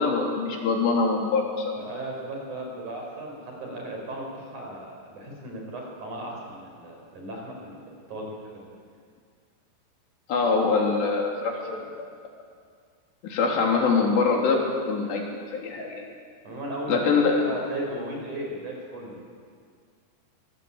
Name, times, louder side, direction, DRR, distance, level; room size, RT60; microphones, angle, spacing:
voice 1, 0.0-1.4 10.3-12.1 13.2-16.0 16.9-17.4, left 4 dB, 70° left, 0 dB, 5.2 m, -24 dB
voice 2, 1.8-7.8 8.1-8.7 16.4-19.2, right 1 dB, 45° right, 0 dB, 6.3 m, -36 dB
24.0 x 20.0 x 8.7 m, 2.1 s
omnidirectional pair, 5.2 m